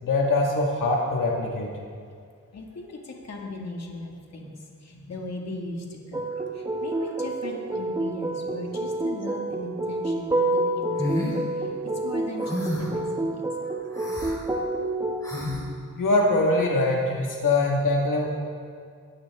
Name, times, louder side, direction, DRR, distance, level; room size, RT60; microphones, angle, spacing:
voice 1, 0.0-1.7 5.0-5.1 16.0-18.4, left 2 dB, 80° left, -1 dB, 2.0 m, -23 dB
voice 2, 2.5-4.5 4.8-6.2 6.5-11.1 11.6-11.7 12.0-13.4, left 2 dB, 55° left, -1 dB, 2.4 m, -38 dB
sound 1, 6.1-15.2, right 2 dB, 15° right, 1.4 m, -28 dB
sound 2, 11.0-11.3 12.4-13.0 13.9-14.3 15.2-15.6, left 1 dB, 10° left, 4.3 m, -30 dB
22.5 x 16.0 x 3.7 m, 2.2 s
wide cardioid pair, 140°, 31 cm